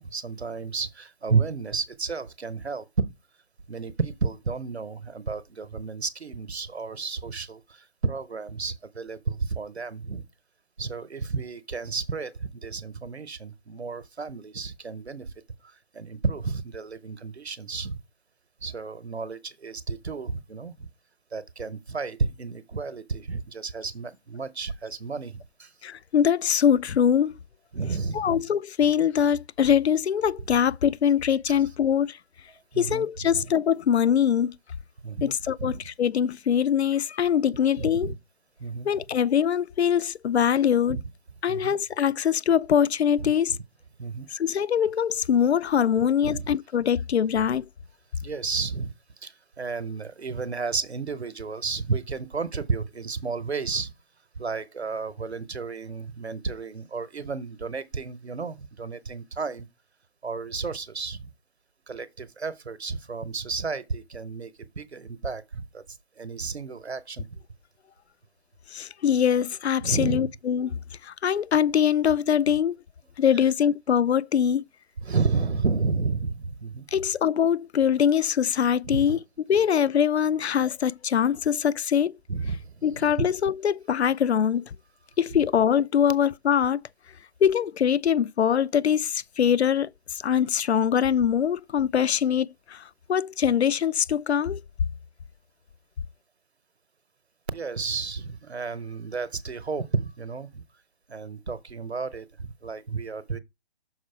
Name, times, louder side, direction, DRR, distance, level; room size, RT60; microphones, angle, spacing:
voice 1, 0.0-3.1 3.7-10.2 10.8-15.3 15.6-18.0 18.6-20.9 21.3-25.7 27.7-28.4 31.5-31.6 32.7-33.5 35.0-35.3 35.6-35.8 37.8-38.2 38.6-38.9 40.9-41.0 41.5-41.7 43.2-43.3 44.0-44.3 46.2-46.5 48.1-48.9 49.2-53.9 54.4-59.7 60.2-61.3 61.9-67.3 69.8-70.3 73.3-73.4 75.0-76.9 78.9-79.2 82.3-83.3 97.5-100.6 101.1-103.4, right 4 dB, 80° right, 1.0 m, -32 dB
voice 2, 25.8-27.3 28.1-32.2 32.8-34.6 35.2-38.1 38.9-41.0 41.4-43.6 44.3-47.7 68.7-70.7 71.0-72.8 73.2-74.6 76.9-79.2 79.5-82.2 82.8-84.7 85.2-86.8 87.4-94.6, left 8 dB, 80° left, 0.5 m, -23 dB
6.4 x 4.6 x 4.4 m
figure-of-eight pair, 145°, 32 cm